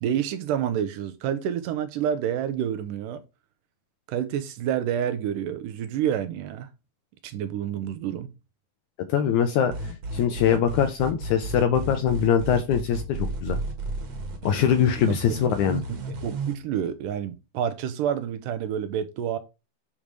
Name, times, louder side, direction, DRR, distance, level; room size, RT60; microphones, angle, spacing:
voice 1, 0.0-3.2 4.1-6.7 7.2-8.3 15.1-15.2 15.9-19.4, right 9 dB, 80° right, 2.1 m, -28 dB
voice 2, 9.1-9.7 10.1-13.6 14.4-15.8, left 8 dB, 80° left, 1.8 m, -22 dB
sound 1, 9.7-16.5, right 2 dB, 55° right, 2.2 m, -33 dB
8.6 x 3.2 x 5.2 m
omnidirectional pair, 4.1 m